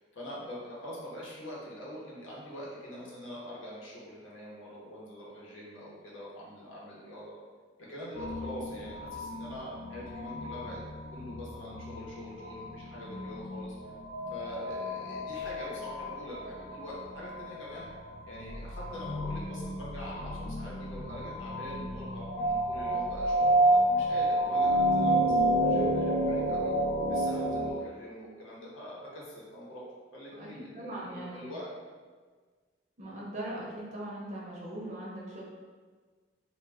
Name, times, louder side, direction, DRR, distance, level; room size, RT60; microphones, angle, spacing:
voice 1, 0.0-7.3 7.9-10.8 11.1-13.8 14.3-17.9 18.2-26.7 27.1-29.8 30.1-31.7, equal, 80° left, -5 dB, 0.8 m, -44 dB
sound 1, 8.2-27.7, right 1 dB, 55° left, 0.3 m, -30 dB
voice 2, 30.7-31.4 33.0-35.4, right 1 dB, 35° right, -5 dB, 0.6 m, -40 dB
2.2 x 2.1 x 3.3 m, 1.5 s
head